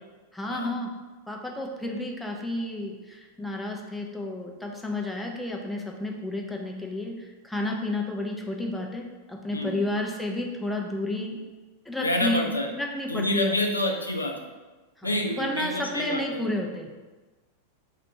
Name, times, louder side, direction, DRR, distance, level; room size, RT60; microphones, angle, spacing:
voice 1, 0.3-0.9 1.3-11.4 11.9-12.5 12.8-13.6 15.0-16.9, left 1 dB, 5° left, 0 dB, 0.4 m, -31 dB
voice 2, 9.5-9.9 12.0-12.7 13.1-14.3 15.0-16.4, left 1 dB, 80° left, 2 dB, 0.4 m, -28 dB
2.8 x 2.5 x 4.3 m, 1.2 s
figure-of-eight pair, 90°, 0 cm